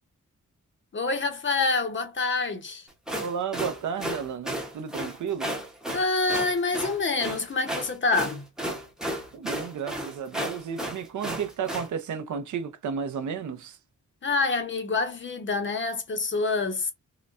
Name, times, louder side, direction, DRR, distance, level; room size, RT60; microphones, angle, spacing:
voice 1, 0.9-2.9 5.9-8.4 14.2-16.9, left 3 dB, 40° left, 0.6 m, -26 dB
sound 1, 2.9-11.9, right 1 dB, ahead, 0.6 m, -33 dB
voice 2, 3.2-5.5 9.3-13.8, right 7 dB, 75° right, 0.5 m, -33 dB
3.8 x 2.1 x 2.3 m
wide cardioid pair, 165°, 30 cm